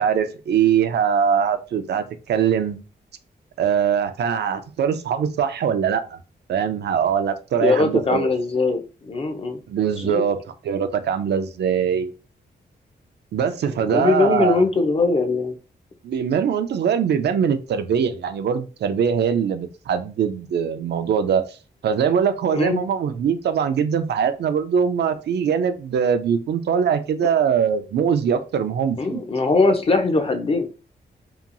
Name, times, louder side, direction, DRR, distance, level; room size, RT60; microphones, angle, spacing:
voice 1, 0.0-2.8 3.6-6.2 6.5-8.3 9.7-10.4 10.6-12.1 13.3-14.6 16.0-21.4 21.8-29.2, right 7 dB, 70° right, 9 dB, 0.4 m, -22 dB
voice 2, 7.6-9.6 10.0-10.2 13.9-15.5 22.5-22.8 29.0-30.7, left 3 dB, 35° left, 5 dB, 0.4 m, -21 dB
2.8 x 2.3 x 2.5 m, 0.33 s
wide cardioid pair, 150°, 18 cm